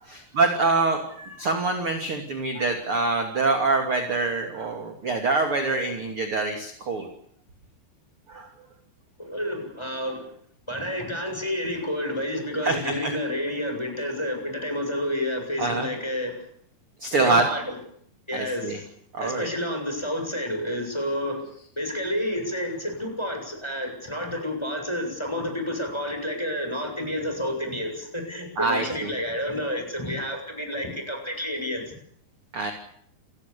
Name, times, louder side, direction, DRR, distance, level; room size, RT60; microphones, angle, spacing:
voice 1, 0.0-7.1 8.3-8.5 12.6-13.1 15.6-15.9 17.0-17.4 18.3-18.8 19.1-19.5 28.6-28.8 32.5-32.7, right 3 dB, 35° right, 5 dB, 3.0 m, -25 dB
voice 2, 9.2-10.3 10.7-16.4 17.1-17.8 18.3-18.9 19.2-21.5 21.8-31.9, left 1 dB, 5° left, 4 dB, 6.7 m, -30 dB
29.0 x 20.5 x 7.0 m, 0.66 s
omnidirectional pair, 5.2 m